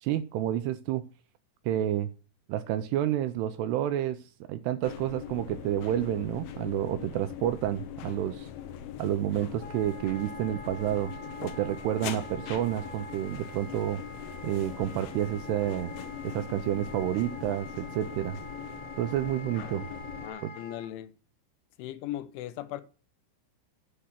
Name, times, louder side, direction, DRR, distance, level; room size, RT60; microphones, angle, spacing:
voice 1, 0.0-1.0 1.7-2.1 2.5-4.2 4.5-8.5 9.0-11.1 11.4-14.0 14.4-15.9 16.2-18.4 19.0-19.9 20.4-20.5, right 12 dB, 85° right, 2.4 m, -29 dB
sound 1, 4.8-20.3, left 9 dB, 70° left, 2.5 m, -41 dB
Wind instrument woodwind instrument, 9.6-20.9, equal, 50° left, 2.2 m, -46 dB
voice 2, 20.2-21.1 21.8-22.8, left 13 dB, 90° left, 3.3 m, -38 dB
10.0 x 6.6 x 5.8 m
omnidirectional pair, 5.3 m